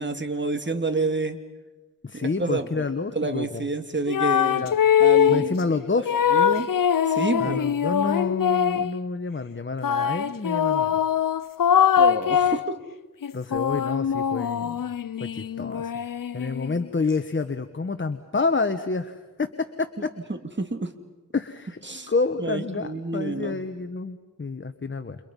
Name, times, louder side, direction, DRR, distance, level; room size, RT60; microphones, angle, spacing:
voice 1, 0.0-1.4 2.1-2.8 3.1-4.7 5.0-5.5 6.3-6.7 7.1-7.6 12.0-12.6 20.3-20.9 21.9-22.1 22.4-23.6, right 3 dB, 30° right, 7 dB, 2.5 m, -28 dB
voice 2, 2.0-3.6 4.5-4.7 5.3-6.2 7.4-10.9 13.3-14.8 15.2-15.9 16.3-19.5 19.8-19.9 21.3-21.8 22.1-25.2, left 4 dB, 35° left, 9 dB, 1.3 m, -28 dB
sound 1, 4.1-5.5 6.1-9.0 9.8-12.7 13.2-16.9, left 8 dB, 65° left, 0.8 m, -22 dB
30.0 x 29.0 x 5.5 m, 1.2 s
cardioid pair, 70°, 35 cm